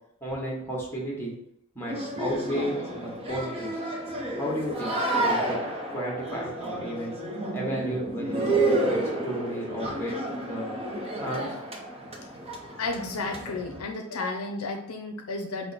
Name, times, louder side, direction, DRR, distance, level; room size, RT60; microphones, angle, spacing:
voice 1, 0.2-1.3 1.7-3.8 4.4-5.6 5.9-7.1 7.5-10.8 11.2-11.6, equal, 10° left, -3 dB, 1.1 m, -33 dB
sound 1, 1.9-13.8, right 2 dB, 25° right, 0.7 m, -30 dB
voice 2, 12.8-15.7, left 3 dB, 70° left, 3 dB, 0.5 m, -32 dB
5.5 x 2.1 x 4.0 m, 0.74 s
head